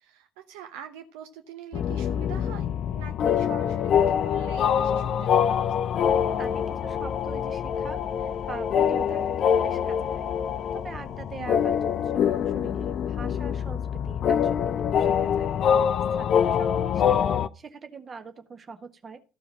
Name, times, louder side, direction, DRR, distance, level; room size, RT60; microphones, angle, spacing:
voice 1, 0.0-5.8 11.4-11.7, right 9 dB, 65° right, 8 dB, 0.7 m, -44 dB
sound 1, 1.7-17.5, left 8 dB, 45° left, 0.5 m, -25 dB
voice 2, 6.4-10.3 10.7-15.5 16.1-19.2, right 4 dB, 30° right, 8 dB, 1.5 m, -43 dB
14.0 x 4.9 x 6.1 m, 0.34 s
figure-of-eight pair, 55°, 0 cm